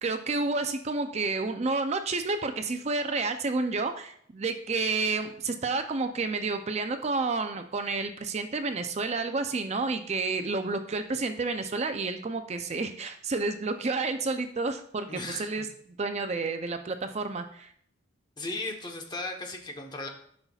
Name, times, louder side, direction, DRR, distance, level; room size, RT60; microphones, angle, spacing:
voice 1, 0.0-15.7 16.0-17.7, right 3 dB, 35° right, 7 dB, 0.5 m, -30 dB
voice 2, 15.1-15.7 18.4-20.1, left 2 dB, 25° left, 2 dB, 1.0 m, -36 dB
12.0 x 5.6 x 2.4 m, 0.65 s
head